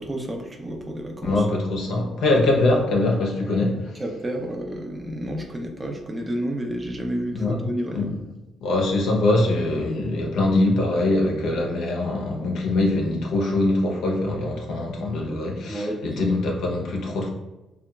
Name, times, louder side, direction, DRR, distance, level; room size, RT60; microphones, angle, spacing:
voice 1, 0.0-1.5 4.0-8.2 15.7-16.0, right 1 dB, 25° right, 2 dB, 0.4 m, -30 dB
voice 2, 1.2-4.0 7.3-7.6 7.9-8.1 8.6-17.3, left 2 dB, 80° left, 0 dB, 0.5 m, -23 dB
2.8 x 2.2 x 2.2 m, 1.0 s
cardioid pair, 90°, 0 cm